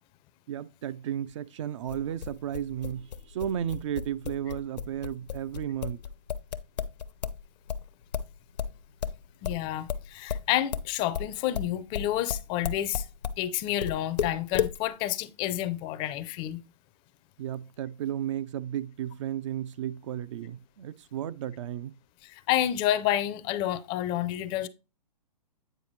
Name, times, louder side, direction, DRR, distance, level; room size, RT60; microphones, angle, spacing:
voice 1, 0.5-6.0 17.4-22.0, right 10 dB, 45° right, 0.4 m, -34 dB
sound 1, 1.9-7.4 7.7-13.4 13.8-14.8, left 8 dB, 80° left, 0.8 m, -33 dB
voice 2, 9.4-13.1 13.4-16.6 22.2-24.7, left 12 dB, 25° left, 0.5 m, -29 dB
8.9 x 4.7 x 3.1 m
hypercardioid pair, 135°, 21 cm